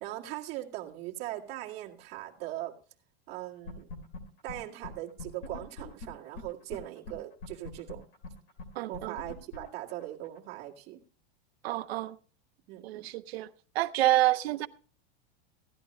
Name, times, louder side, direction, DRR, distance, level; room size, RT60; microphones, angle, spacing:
voice 1, 0.0-2.7 3.3-3.9 4.4-8.0 8.9-11.0 12.7-13.1, right 15 dB, 30° right, 2.0 m, -40 dB
sound 1, 3.7-4.2 4.5-4.6 4.8-4.9 5.2-6.8 7.1-7.2 7.4-10.4, left 3 dB, 50° left, 3.0 m, -42 dB
voice 2, 8.8-9.2 11.6-12.2 12.8-13.5 13.7-14.7, right 15 dB, 65° right, 0.8 m, -28 dB
15.5 x 11.5 x 3.1 m
supercardioid pair, 170°, 32 cm